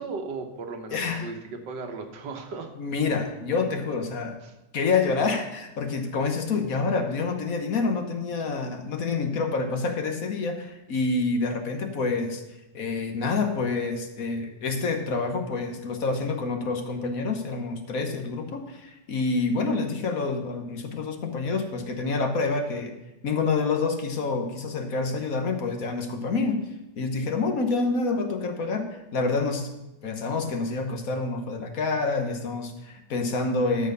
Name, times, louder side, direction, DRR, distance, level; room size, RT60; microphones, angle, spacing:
voice 1, 0.0-2.7 4.4-4.5, right 4 dB, 90° right, 4 dB, 1.8 m, -36 dB
voice 2, 0.9-1.3 2.8-4.4 4.7-12.4 12.7-22.9 23.2-26.6 27.0-28.9 29.1-29.7 30.0-33.9, left 4 dB, 55° left, 5 dB, 1.4 m, -27 dB
13.0 x 4.5 x 6.8 m, 0.97 s
omnidirectional pair, 1.9 m